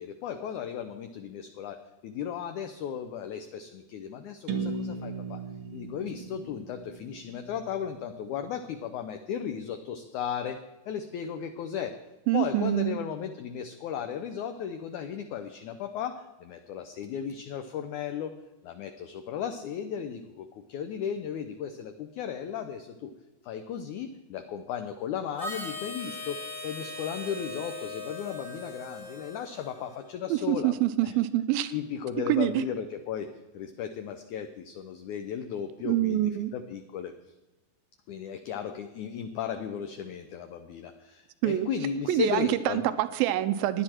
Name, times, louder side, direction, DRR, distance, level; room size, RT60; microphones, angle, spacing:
voice 1, 0.0-1.8 2.0-5.4 5.7-10.6 10.9-11.9 12.3-18.3 18.6-23.1 23.4-31.1 31.7-33.3 33.5-37.1 38.1-42.9, left 8 dB, 75° left, 7 dB, 1.9 m, -35 dB
sound 1, 4.5-8.3, right 4 dB, 60° right, 1.4 m, -37 dB
voice 2, 12.3-13.0 30.3-31.7 32.3-32.6 35.8-36.5 41.4-41.7 42.1-43.8, right 13 dB, 90° right, 12 dB, 2.5 m, -26 dB
Harmonica, 25.4-30.1, left 2 dB, 30° left, 0.6 m, -40 dB
16.5 x 10.5 x 4.4 m, 1.1 s
omnidirectional pair, 4.2 m